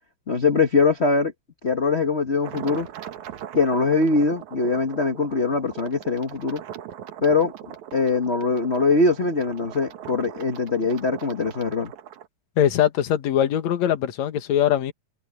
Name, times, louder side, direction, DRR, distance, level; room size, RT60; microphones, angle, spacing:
voice 1, 0.3-1.3 1.6-2.9 3.5-6.6 7.2-11.9, left 3 dB, 40° left, 0.9 m, -22 dB
sound 1, 2.4-12.3, right 10 dB, 80° right, 2.7 m, -40 dB
voice 2, 12.6-14.9, left 10 dB, 70° left, 2.7 m, -21 dB
omnidirectional pair, 3.3 m